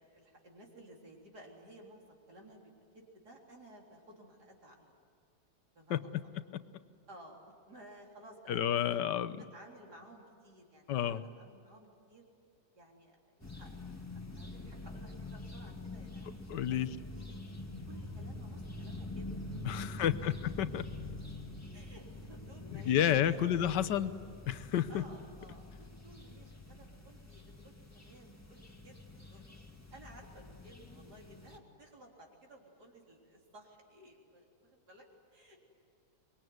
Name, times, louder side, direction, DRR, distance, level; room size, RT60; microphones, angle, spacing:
voice 1, 0.0-4.9 5.7-6.1 7.1-8.7 9.0-12.2 12.8-13.8 14.1-17.4 17.8-19.3 19.6-20.3 21.7-23.9 24.9-29.6 29.9-35.6, right 1 dB, 65° right, -1 dB, 4.4 m, -56 dB
voice 2, 5.9-6.2 8.5-9.4 10.9-11.2 16.5-17.0 19.6-20.8 22.7-24.1 24.5-25.0, left 10 dB, 80° left, 13 dB, 1.5 m, -31 dB
sound 1, 13.4-31.6, left 2 dB, 10° left, 2.1 m, -46 dB
25.0 x 22.5 x 9.5 m, 2.4 s
omnidirectional pair, 1.9 m